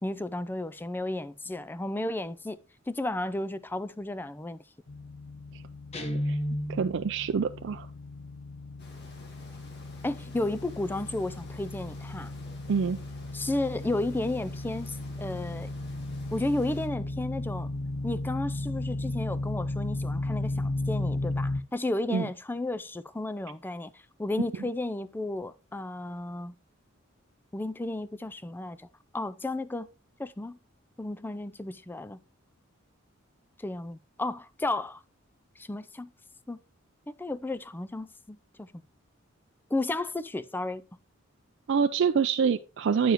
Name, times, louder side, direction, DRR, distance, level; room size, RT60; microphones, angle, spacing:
voice 1, 0.0-2.6 2.9-4.6 10.0-12.3 13.3-15.7 16.3-17.7 18.0-26.5 27.5-28.9 29.1-29.9 30.2-30.6 31.0-32.2 33.6-35.0 35.6-36.1 36.5-36.6 37.1-38.8 39.7-40.8, left 2 dB, 10° left, 0.4 m, -33 dB
sound 1, 4.9-21.6, left 2 dB, 70° left, 0.6 m, -35 dB
Guitar, 5.9-7.1, equal, 30° left, 1.1 m, -31 dB
voice 2, 6.7-7.9 12.7-13.0 22.1-22.3 41.7-43.1, right 6 dB, 60° right, 0.4 m, -26 dB
sound 2, 8.8-16.9, left 2 dB, 55° left, 1.7 m, -52 dB
9.2 x 7.0 x 3.0 m
head